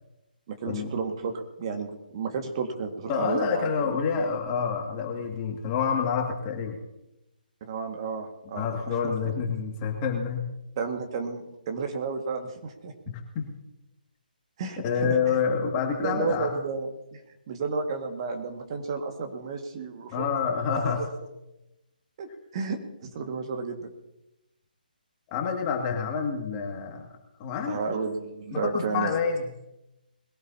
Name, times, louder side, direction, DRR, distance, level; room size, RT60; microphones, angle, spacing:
voice 1, 0.5-4.2 7.6-9.3 10.8-12.9 14.6-15.2 16.0-17.2 17.5-20.9 22.2-23.9 27.7-29.1, right 4 dB, 35° right, 4 dB, 1.9 m, -32 dB
voice 2, 3.1-6.8 8.5-10.4 13.1-13.4 14.8-16.5 20.1-21.0 25.3-27.0 27.4-28.0 28.5-29.5, left 6 dB, 25° left, 2 dB, 2.2 m, -28 dB
21.5 x 17.0 x 2.9 m, 0.92 s
figure-of-eight pair, 140°, 5 cm